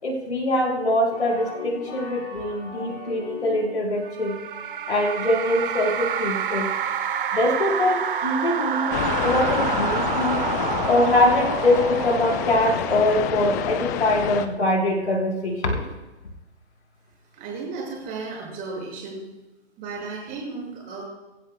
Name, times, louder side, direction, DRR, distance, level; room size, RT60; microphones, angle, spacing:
voice 1, 0.0-4.4 4.9-6.7 7.3-10.4 10.9-15.9, left 1 dB, 70° left, -1 dB, 4.6 m, -23 dB
sound 1, 1.1-4.0, left 4 dB, 30° left, 5.1 m, -38 dB
sound 2, 4.0-13.7, right 8 dB, 50° right, 1.2 m, -28 dB
sound 3, 8.9-14.5, left 10 dB, 15° left, 0.4 m, -28 dB
voice 2, 17.3-19.3 19.8-21.0, right 4 dB, 25° right, -2 dB, 6.5 m, -34 dB
24.0 x 15.5 x 2.3 m, 1.0 s
figure-of-eight pair, 125°, 34 cm